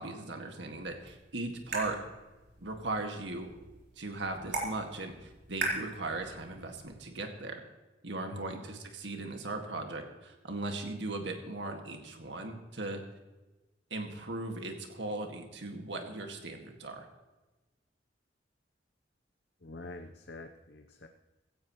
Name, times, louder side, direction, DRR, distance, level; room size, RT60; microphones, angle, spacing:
voice 1, 0.0-2.0 2.6-3.5 4.0-7.6 8.0-13.0 13.9-17.1, right 2 dB, 85° right, 4 dB, 2.0 m, -38 dB
sound 1, 0.8-6.8, right 2 dB, 65° right, 4.2 m, -41 dB
voice 2, 8.3-8.6 19.6-21.1, left 2 dB, 65° left, 5 dB, 0.8 m, -46 dB
16.0 x 16.0 x 3.1 m, 1.1 s
head